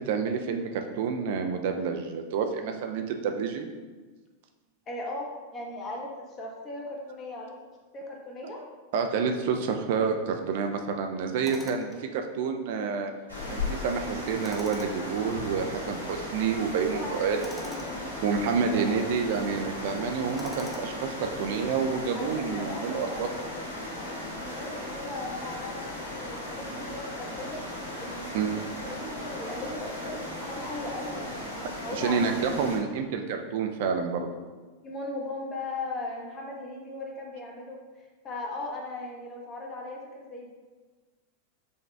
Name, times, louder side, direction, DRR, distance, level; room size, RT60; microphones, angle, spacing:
voice 1, 0.0-3.7 8.6-8.7 8.9-13.1 13.5-17.4 18.2-23.3 28.3-28.6 31.9-34.3, right 6 dB, 50° right, 5 dB, 0.3 m, -29 dB
voice 2, 4.9-7.6 7.9-8.6 17.0-18.2 18.5-19.1 22.1-32.4 32.6-32.7 34.8-37.8 38.2-40.5, left 2 dB, 30° left, 0 dB, 0.9 m, -38 dB
Tools, 11.4-12.0 14.4-15.1 17.4-17.9 20.4-21.1, equal, 5° left, 0.5 m, -42 dB
sound 1, 13.3-32.8, left 1 dB, 80° left, 0.9 m, -37 dB
5.1 x 2.4 x 3.3 m, 1.3 s
figure-of-eight pair, 90°, 0 cm